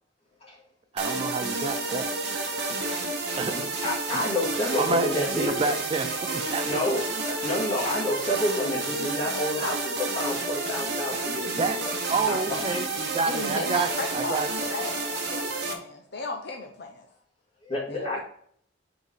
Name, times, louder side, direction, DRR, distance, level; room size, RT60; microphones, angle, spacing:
voice 1, 0.9-2.1 3.4-3.5 4.1-4.2 4.8-6.8 11.6-11.8 12.1-12.9 13.1-14.5, right 4 dB, 30° right, 8 dB, 0.3 m, -28 dB
sound 1, 1.0-15.7, right 3 dB, 55° right, 1.0 m, -30 dB
voice 2, 3.5-5.7 6.6-7.0 7.3-11.9 12.3-12.8 17.6-18.2, left 1 dB, 30° left, -5 dB, 2.2 m, -29 dB
voice 3, 13.3-14.4 14.7-17.1 17.9-18.2, left 2 dB, 55° left, 3 dB, 0.8 m, -35 dB
5.2 x 3.9 x 4.9 m, 0.64 s
head